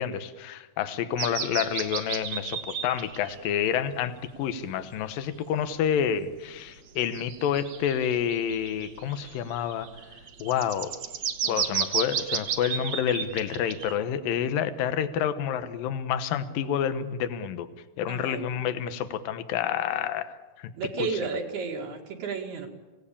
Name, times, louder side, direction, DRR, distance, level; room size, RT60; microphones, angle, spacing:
voice 1, 0.0-9.9 10.4-10.9 11.5-17.7 18.0-20.7, left 9 dB, 70° left, 10 dB, 2.7 m, -29 dB
sound 1, 1.2-3.4 3.9-4.0 5.0-5.1 7.0-14.0, right 7 dB, 55° right, 2.2 m, -33 dB
voice 2, 18.1-18.4 20.8-22.7, right 5 dB, 75° right, 0 dB, 4.2 m, -32 dB
27.0 x 18.0 x 8.6 m, 1.2 s
omnidirectional pair, 4.6 m